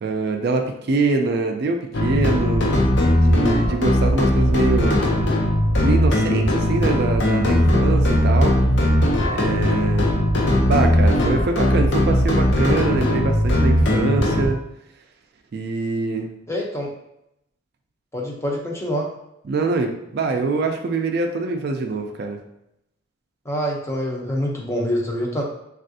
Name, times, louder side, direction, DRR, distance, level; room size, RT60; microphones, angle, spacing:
voice 1, 0.0-2.7 3.2-5.1 5.8-8.5 9.3-10.1 10.7-14.6 15.5-16.3 19.5-22.4, right 3 dB, 55° right, 4 dB, 0.4 m, -24 dB
sound 1, 1.9-14.5, left 1 dB, 65° left, 0.6 m, -18 dB
voice 2, 16.5-16.9 18.1-19.1 23.4-25.4, equal, 15° left, -1 dB, 0.5 m, -25 dB
3.4 x 2.4 x 2.6 m, 0.83 s
head